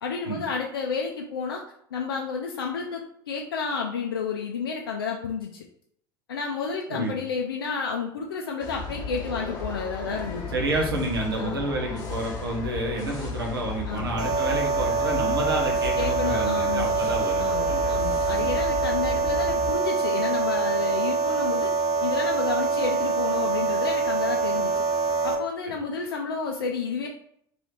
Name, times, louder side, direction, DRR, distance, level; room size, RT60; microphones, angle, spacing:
voice 1, 0.0-1.6 1.9-5.6 6.3-10.4 11.4-11.7 13.9-14.4 16.0-16.9 17.4-21.7 22.0-24.8 25.2-27.1, left 5 dB, 80° left, 1 dB, 0.4 m, -31 dB
sound 1, 8.6-19.8, left 4 dB, 35° left, 1.0 m, -34 dB
voice 2, 10.5-18.5, right 2 dB, 85° right, 0 dB, 0.8 m, -30 dB
sound 2, 14.2-25.4, right 4 dB, 35° right, 0.8 m, -25 dB
3.0 x 2.7 x 3.1 m, 0.69 s
figure-of-eight pair, 70°, 12 cm